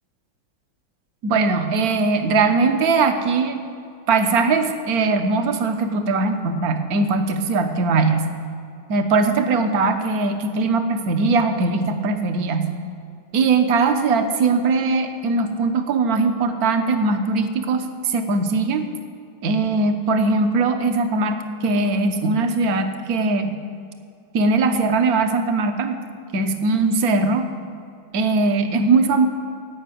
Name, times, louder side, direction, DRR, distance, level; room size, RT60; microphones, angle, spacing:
voice 1, 1.2-3.6 4.1-8.3 8.9-12.7 13.3-18.9 19.4-23.6 24.3-26.0 26.3-27.5 28.1-29.3, right 3 dB, 55° right, 6 dB, 1.4 m, -20 dB
17.0 x 6.0 x 9.2 m, 2.4 s
omnidirectional pair, 2.2 m